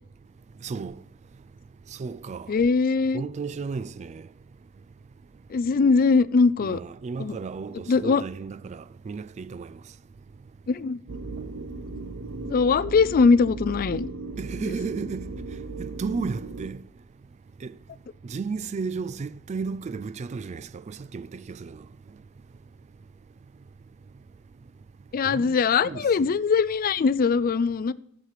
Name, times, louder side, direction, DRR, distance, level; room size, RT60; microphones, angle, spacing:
voice 1, 0.6-1.0 2.0-2.5 3.1-4.3 6.6-9.7 14.4-15.3 15.8-16.8 17.6-17.7 18.2-21.8 25.3-25.6 25.8-26.3, right 4 dB, 35° right, 0.3 m, -33 dB
voice 2, 2.5-3.2 5.5-6.8 7.2-7.4 7.9-8.2 10.7-11.0 12.4-14.1 25.1-27.9, left 4 dB, 45° left, 0.4 m, -21 dB
sound 1, 11.1-16.7, right 3 dB, 60° right, 0.8 m, -36 dB
13.5 x 7.5 x 4.9 m
head